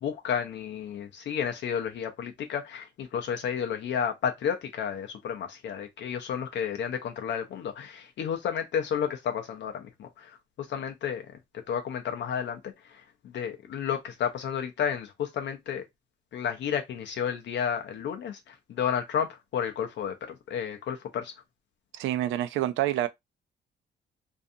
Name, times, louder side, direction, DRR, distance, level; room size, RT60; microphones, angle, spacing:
voice 1, 0.0-11.3 11.7-15.8 16.3-21.3, left 8 dB, 65° left, 0.5 m, -32 dB
voice 2, 21.9-23.1, right 13 dB, 80° right, 0.4 m, -27 dB
2.5 x 2.3 x 2.6 m
cardioid pair, 90°, 20 cm